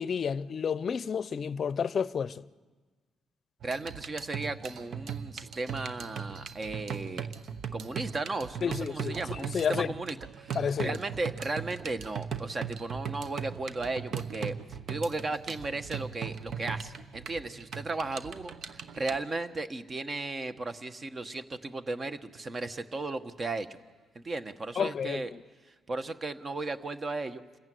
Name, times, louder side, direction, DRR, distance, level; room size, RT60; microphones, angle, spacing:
voice 1, 0.0-2.3 8.6-9.9 10.5-11.0 24.8-25.2, left 7 dB, 50° left, 0.6 m, -30 dB
voice 2, 3.6-7.3 7.7-23.7 24.1-25.3 25.9-27.4, right 3 dB, 35° right, 1.2 m, -35 dB
sound 1, 3.6-19.2, right 7 dB, 65° right, 1.1 m, -39 dB
27.0 x 15.0 x 9.4 m
cardioid pair, 90°, 0 cm